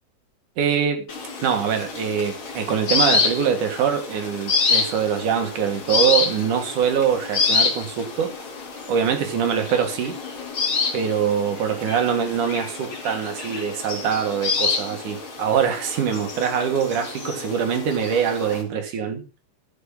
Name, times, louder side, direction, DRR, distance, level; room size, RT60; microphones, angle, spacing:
voice 1, 0.6-1.0 1.4-8.3 8.9-10.2 10.9-19.2, right 7 dB, 70° right, 2.9 m, -23 dB
sound 1, 1.1-18.6, left 4 dB, 40° left, 2.8 m, -27 dB
12.5 x 7.2 x 3.8 m
omnidirectional pair, 3.9 m